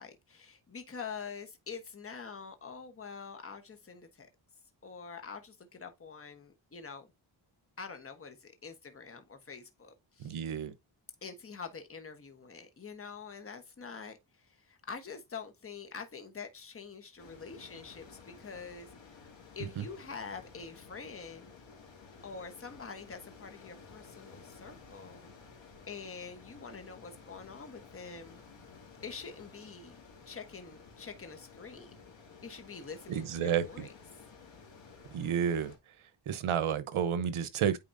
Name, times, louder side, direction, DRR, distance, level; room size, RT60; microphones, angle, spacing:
voice 1, 0.0-4.3 4.8-7.1 7.8-10.4 11.2-14.2 14.5-18.9 19.6-21.5 22.2-25.3 25.9-28.4 29.0-30.0 30.3-31.9 32.4-33.9, left 5 dB, 25° left, 1.2 m, -45 dB
voice 2, 10.2-10.7 19.8-19.9 33.1-33.8 35.1-35.7 36.3-37.8, right 8 dB, 80° right, 0.9 m, -31 dB
sound 1, 17.2-35.8, left 5 dB, 65° left, 2.3 m, -54 dB
8.9 x 4.1 x 2.6 m
wide cardioid pair, 135°, 49 cm